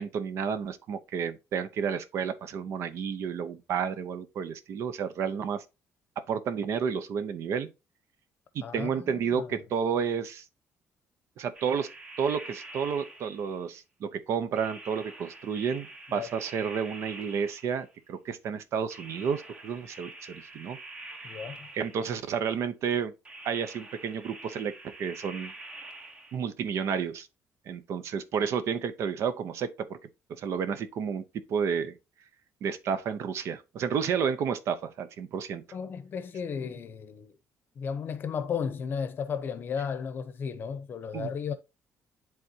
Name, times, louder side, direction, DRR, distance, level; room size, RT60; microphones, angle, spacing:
voice 1, 0.0-5.6 6.3-7.7 8.5-10.4 11.4-11.9 12.2-15.9 16.1-20.8 21.7-23.1 23.4-24.7 25.0-25.5 26.3-27.3 27.7-30.0 30.3-31.9 32.6-35.6 41.1-41.3, right 7 dB, 55° right, 0.7 m, -31 dB
voice 2, 8.6-9.5 16.1-16.3 21.2-21.7 35.7-37.3 37.8-41.6, left 6 dB, 40° left, 0.7 m, -34 dB
sound 1, 11.5-13.6 14.6-18.0 18.9-22.2 23.2-26.4, right 2 dB, 20° right, 0.8 m, -46 dB
10.5 x 3.6 x 2.8 m
cardioid pair, 170°, 6 cm